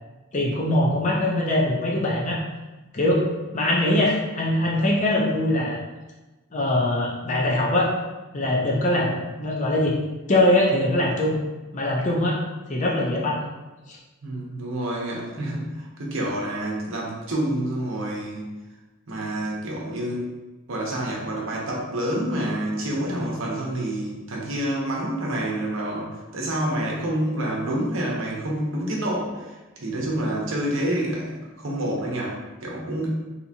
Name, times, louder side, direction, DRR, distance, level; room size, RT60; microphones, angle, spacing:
voice 1, 0.3-2.4 2.9-3.3 3.5-5.8 6.5-7.9 8.3-10.0 10.3-11.4 11.7-12.4 12.7-13.4 13.9-14.0, left 1 dB, 35° left, -3 dB, 0.5 m, -22 dB
voice 2, 14.2-18.5 19.1-20.3 20.7-33.1, right 1 dB, 70° right, -3 dB, 0.8 m, -28 dB
3.4 x 2.8 x 2.8 m, 1.1 s
head